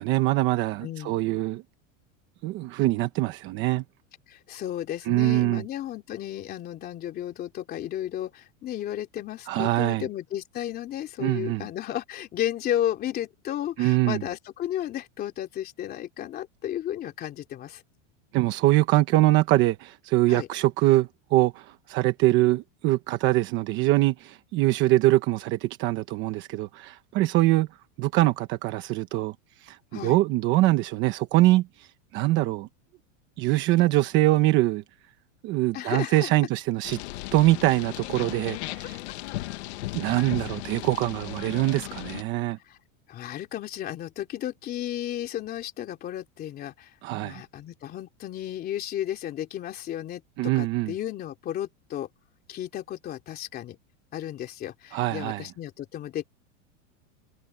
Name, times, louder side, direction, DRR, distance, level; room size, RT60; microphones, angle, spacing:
voice 1, 0.0-1.6 2.4-3.8 5.1-5.6 9.5-10.1 11.2-11.7 13.8-14.2 18.3-27.7 28.0-29.3 29.6-31.9 32.1-32.7 33.4-34.8 35.4-37.0 37.3-39.0 39.9-42.6 47.0-47.4 50.4-50.9 54.9-55.4, right 17 dB, 30° right, 1.1 m, -23 dB
voice 2, 0.8-1.1 4.3-17.8 20.3-20.5 29.9-30.2 35.7-36.3 42.7-42.8 43.1-46.9 47.2-52.1 52.5-53.8 54.1-56.2, left 12 dB, 25° left, 3.1 m, -33 dB
sound 1, 36.8-42.2, left 18 dB, 55° left, 2.1 m, -36 dB
supercardioid pair, 170°, 39 cm